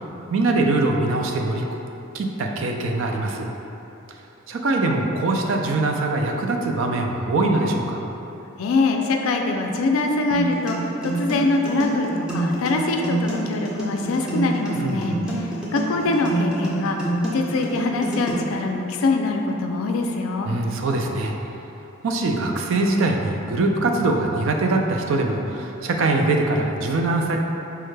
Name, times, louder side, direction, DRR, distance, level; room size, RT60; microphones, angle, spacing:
voice 1, 0.3-1.6 2.1-3.5 4.5-8.0 14.8-15.3 20.5-21.3 22.0-27.4, right 2 dB, 65° right, 2 dB, 0.4 m, -22 dB
voice 2, 8.6-20.5, left 2 dB, 75° left, 3 dB, 0.3 m, -23 dB
sound 1, 10.3-18.3, right 1 dB, 5° right, 0.5 m, -27 dB
4.6 x 2.1 x 3.2 m, 2.9 s
head